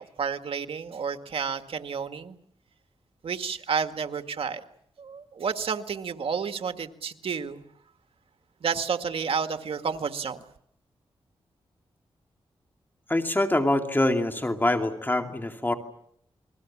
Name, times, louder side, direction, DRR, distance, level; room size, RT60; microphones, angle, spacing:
voice 1, 0.0-2.4 3.2-4.6 5.0-7.6 8.6-10.4, right 6 dB, 70° right, 8 dB, 1.8 m, -30 dB
voice 2, 13.1-15.7, left 1 dB, 20° left, 5 dB, 2.6 m, -25 dB
29.5 x 22.0 x 7.4 m, 0.71 s
cardioid pair, 75°, 10 cm